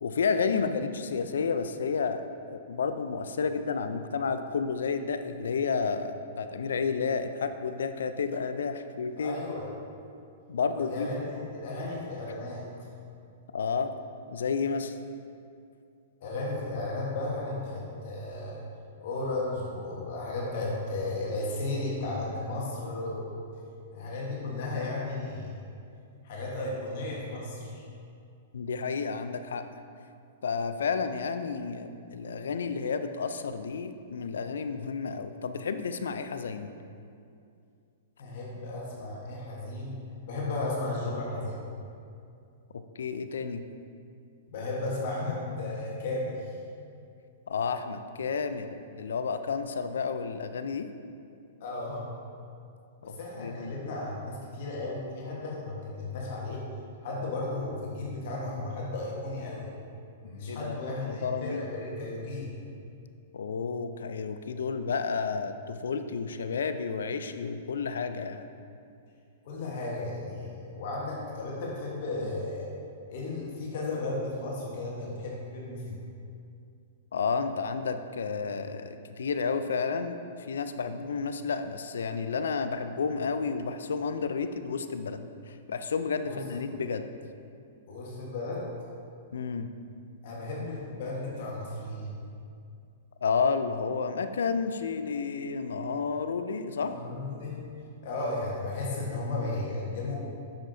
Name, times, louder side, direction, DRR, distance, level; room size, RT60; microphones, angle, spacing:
voice 1, 0.0-2.2 2.5-9.4 10.5-11.1 13.5-13.9 14.3-14.9 28.5-29.7 30.4-36.7 42.7-43.6 47.5-50.9 53.1-53.7 60.5-60.7 61.2-61.6 63.3-68.4 77.1-80.2 80.5-85.2 85.5-87.1 89.3-89.7 93.2-97.0, left 5 dB, 80° left, 9 dB, 0.4 m, -31 dB
voice 2, 9.1-9.7 10.7-12.9 16.2-18.6 19.0-23.3 23.9-25.6 26.2-27.9 38.2-41.7 44.5-46.6 51.6-52.1 53.0-56.7 57.0-59.7 60.2-62.6 69.4-72.7 73.1-76.0 86.2-86.7 87.9-88.7 90.2-92.1 96.8-97.7 98.0-100.2, left 2 dB, 60° left, -4 dB, 1.3 m, -34 dB
7.0 x 6.4 x 2.7 m, 2.4 s
hypercardioid pair, 125°, 0 cm